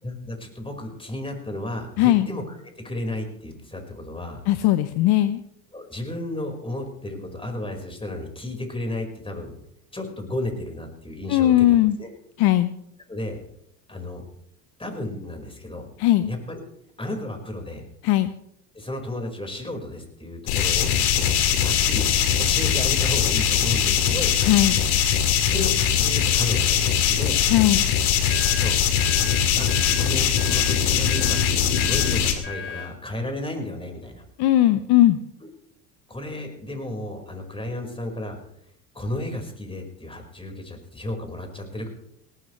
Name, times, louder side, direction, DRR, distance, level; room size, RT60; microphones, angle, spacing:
voice 1, 0.0-2.4 2.7-4.4 5.7-9.5 9.9-12.1 13.1-13.4 13.9-14.2 14.8-15.9 16.3-16.6 17.0-17.8 18.7-21.3 21.6-22.1 22.4-24.3 25.5-27.4 28.5-28.8 29.6-31.4 31.7-34.2 35.4-35.5 36.1-38.4 38.9-41.9, left 1 dB, 10° left, 3 dB, 5.0 m, -33 dB
voice 2, 2.0-2.3 4.5-5.4 11.3-12.0 12.4-12.7 16.0-16.3 18.0-18.3 24.4-24.8 27.5-27.8 34.4-35.2, left 14 dB, 55° left, 12 dB, 0.9 m, -18 dB
sound 1, 20.5-32.3, left 9 dB, 70° left, 2.4 m, -21 dB
sound 2, 28.3-33.0, left 7 dB, 25° left, 6.7 m, -37 dB
18.5 x 18.5 x 3.3 m, 0.72 s
hypercardioid pair, 75°, 47 cm